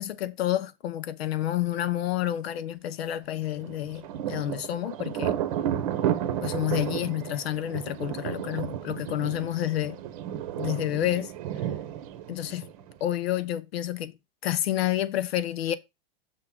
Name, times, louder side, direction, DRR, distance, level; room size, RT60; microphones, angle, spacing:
voice 1, 0.0-5.3 6.4-10.0 10.6-11.3 12.3-12.7 13.0-14.1 14.4-15.8, left 13 dB, 90° left, 0.9 m, -29 dB
Thunder, 3.6-13.1, right 10 dB, 35° right, 0.8 m, -32 dB
6.6 x 3.7 x 6.0 m
supercardioid pair, 180°, 30 cm